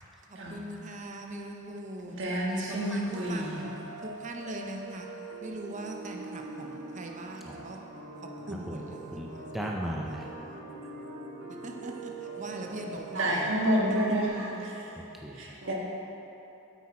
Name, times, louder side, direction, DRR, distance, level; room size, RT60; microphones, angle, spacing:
voice 1, 0.5-2.2 2.9-7.9 8.5-9.5 11.6-13.2, right 1 dB, 35° right, 0.7 m, -41 dB
voice 2, 2.1-3.9 13.1-15.0 15.3-15.7, right 1 dB, 65° right, 1.6 m, -29 dB
sound 1, 2.7-14.6, right 2 dB, 90° right, 1.3 m, -44 dB
voice 3, 8.5-8.8 9.1-10.3 15.0-15.6, equal, ahead, 0.5 m, -37 dB
Keyboard (musical), 8.9-14.3, right 3 dB, 35° left, 1.2 m, -50 dB
8.8 x 8.0 x 4.2 m
head